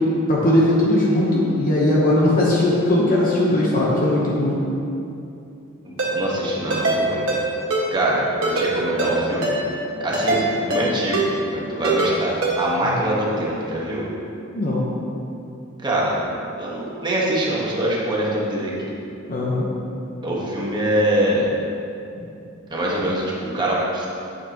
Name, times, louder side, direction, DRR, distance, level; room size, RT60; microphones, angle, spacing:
voice 1, 0.3-4.6 12.8-12.9 14.5-14.9 19.3-19.7 22.2-22.3, left 1 dB, 40° left, -4 dB, 0.9 m, -19 dB
voice 2, 5.8-7.2 7.9-9.6 10.0-14.1 15.8-16.3 16.6-18.9 20.2-21.5 22.7-24.1, right 1 dB, 20° right, -5 dB, 1.2 m, -24 dB
Ringtone, 6.0-6.1 6.7-7.0 7.3-7.4 7.7-7.8 8.4-8.7 9.0-9.1 9.4-9.6 10.1-10.4 10.7-10.8 11.1-11.3 11.8-12.1 12.4-12.5, right 3 dB, 65° right, 1.5 m, -22 dB
8.6 x 6.9 x 2.9 m, 2.7 s
head